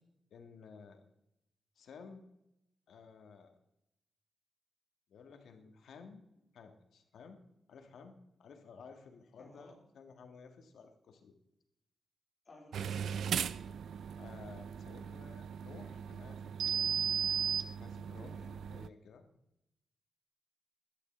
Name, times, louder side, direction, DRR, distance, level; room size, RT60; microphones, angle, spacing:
voice 1, 0.3-1.0 1.8-2.3 2.9-3.5 5.1-6.2 6.5-7.4 7.7-11.3 14.2-16.9 17.8-18.4 18.7-19.2, left 5 dB, 80° left, 6 dB, 1.9 m, -54 dB
voice 2, 9.3-9.8 12.5-13.2 18.2-18.6, left 2 dB, 30° left, 0 dB, 4.2 m, -56 dB
sound 1, 12.7-18.9, right 8 dB, 90° right, 0.5 m, -37 dB
11.5 x 11.0 x 8.0 m, 0.87 s
wide cardioid pair, 170°, 0 cm